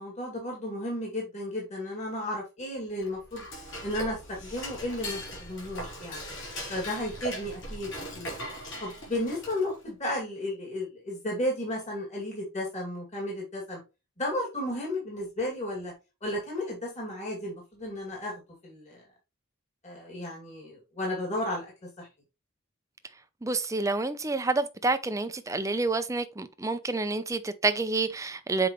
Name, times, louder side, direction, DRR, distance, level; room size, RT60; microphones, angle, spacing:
voice 1, 0.0-3.5 3.8-6.2 6.7-8.3 8.8-13.8 14.2-15.9 16.2-19.0 19.8-22.1, left 1 dB, 30° left, 2.5 m, -33 dB
Dishes pots and pans / Cutlery silverware, 3.0-9.8, equal, 60° left, 4.3 m, -39 dB
voice 2, 23.4-28.7, right 3 dB, 15° right, 0.5 m, -28 dB
7.7 x 4.8 x 3.1 m
head